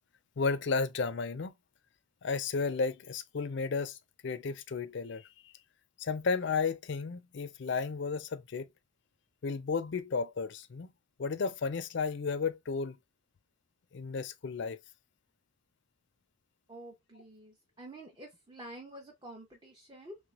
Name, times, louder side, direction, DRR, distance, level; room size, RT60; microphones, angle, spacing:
voice 1, 0.4-1.5 2.2-4.0 4.2-5.3 6.0-8.7 9.4-10.9 11.2-13.0 13.9-14.8, left 4 dB, 60° left, 0.4 m, -33 dB
voice 2, 16.7-20.2, right 1 dB, 20° right, 0.7 m, -49 dB
3.2 x 3.2 x 2.4 m
head